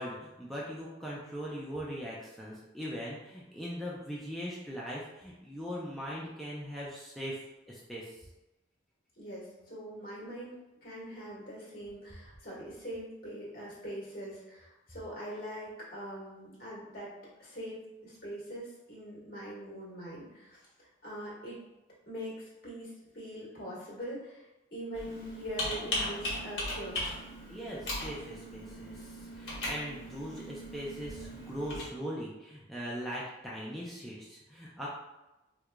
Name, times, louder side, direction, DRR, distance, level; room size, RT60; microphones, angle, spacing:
voice 1, 0.0-7.4 7.7-8.2 27.5-34.9, equal, ahead, -6 dB, 0.4 m, -40 dB
voice 2, 9.2-10.5 10.8-17.1 17.4-21.6 22.1-24.4 24.7-27.2, equal, 50° left, -7 dB, 1.5 m, -42 dB
Computer keyboard, 24.9-31.8, left 1 dB, 65° left, 1.1 m, -38 dB
4.6 x 2.4 x 2.2 m, 0.99 s
head